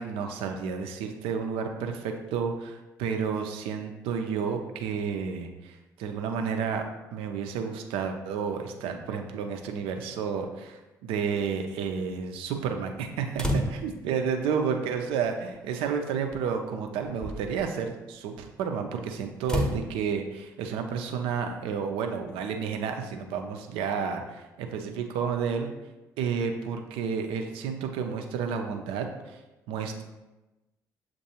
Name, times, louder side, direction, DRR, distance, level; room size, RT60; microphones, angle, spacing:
voice 1, 0.0-25.7 26.2-29.4 29.7-30.0, right 6 dB, 65° right, 4 dB, 0.5 m, -31 dB
sound 1, 13.4-14.1 15.3-15.4 16.3-16.5 17.0-17.7 19.4-19.8, equal, 5° left, 0.8 m, -30 dB
7.1 x 2.6 x 2.8 m, 1.1 s
figure-of-eight pair, 45°, 10 cm